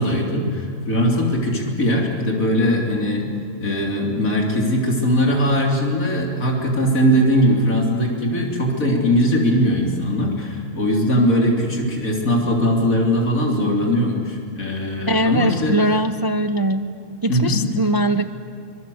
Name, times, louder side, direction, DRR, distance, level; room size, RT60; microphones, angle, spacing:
voice 1, 0.0-3.3 3.6-15.9 17.3-17.7, equal, 85° left, 0 dB, 3.8 m, -20 dB
voice 2, 15.1-16.9 17.2-18.3, right 1 dB, 20° right, 9 dB, 0.6 m, -21 dB
26.0 x 25.5 x 7.9 m, 2.4 s
omnidirectional pair, 1.4 m